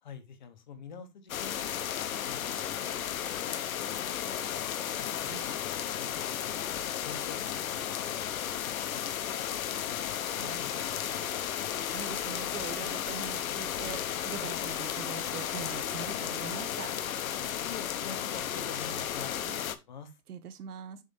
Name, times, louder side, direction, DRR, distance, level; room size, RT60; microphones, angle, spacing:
voice 1, 0.0-4.2 5.4-6.7 7.0-7.7 8.1-8.4 8.6-10.2 10.6-11.9 17.6-20.2, left 6 dB, 30° left, 0.7 m, -48 dB
sound 1, 1.3-19.8, left 10 dB, 65° left, 0.9 m, -34 dB
voice 2, 11.9-16.9 19.4-19.5 20.3-21.0, right 7 dB, 75° right, 1.3 m, -42 dB
7.3 x 3.2 x 5.3 m
hypercardioid pair, 175°, 46 cm